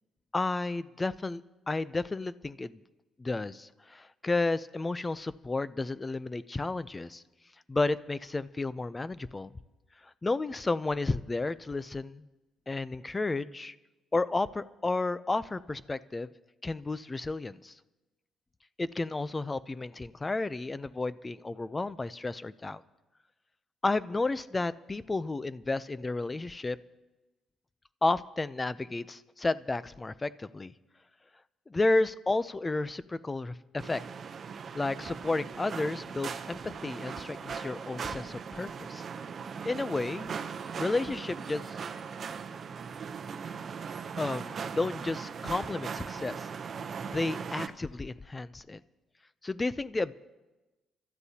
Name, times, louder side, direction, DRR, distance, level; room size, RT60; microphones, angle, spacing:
voice 1, 0.3-1.4 1.7-2.8 3.2-7.2 7.7-9.5 10.2-12.3 12.7-13.7 14.1-16.3 16.6-17.7 18.8-22.8 23.8-26.8 28.0-30.7 31.7-34.0 34.7-39.1 39.6-40.3 40.8-41.8 44.2-46.5 47.1-48.8 49.4-50.1, left 2 dB, 20° left, 16 dB, 0.4 m, -32 dB
sound 1, 33.8-47.7, right 6 dB, 50° right, 0.7 m, -39 dB
30.0 x 13.0 x 2.8 m, 1.1 s
cardioid pair, 100°, 0 cm